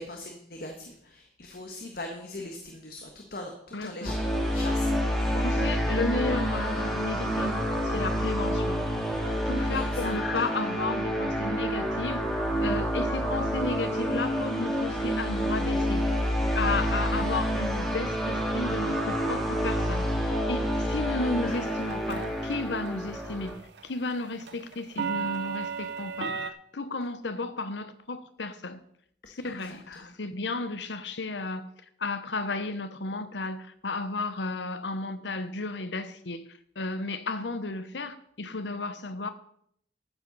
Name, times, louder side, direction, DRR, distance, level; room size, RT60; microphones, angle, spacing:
voice 1, 0.0-5.5 9.7-10.5 20.8-21.0 29.4-30.1, left 1 dB, 55° left, 1.4 m, -41 dB
voice 2, 3.7-4.1 5.4-8.9 9.5-12.2 12.6-16.1 16.5-28.8 29.3-31.7 32.0-36.5 36.8-39.3, left 3 dB, 85° left, 1.0 m, -33 dB
sound 1, 4.1-23.5, equal, ahead, 2.5 m, -28 dB
sound 2, 21.6-22.6 22.9-23.2 23.5-26.5, right 6 dB, 75° right, 0.8 m, -33 dB
13.5 x 9.8 x 4.1 m
head